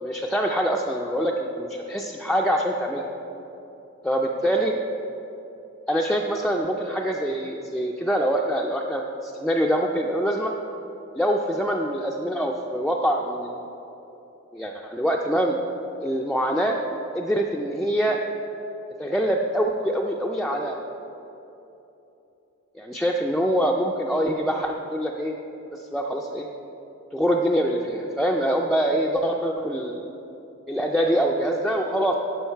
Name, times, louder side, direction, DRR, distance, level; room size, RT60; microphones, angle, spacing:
voice 1, 0.0-3.1 4.0-4.7 5.9-10.5 11.2-13.7 14.5-15.6 16.0-16.7 17.1-18.2 19.0-20.8 22.8-25.3 25.7-26.5 27.1-30.1 30.7-32.2, equal, 5° left, -1 dB, 0.3 m, -24 dB
11.5 x 5.0 x 4.5 m, 3.0 s
head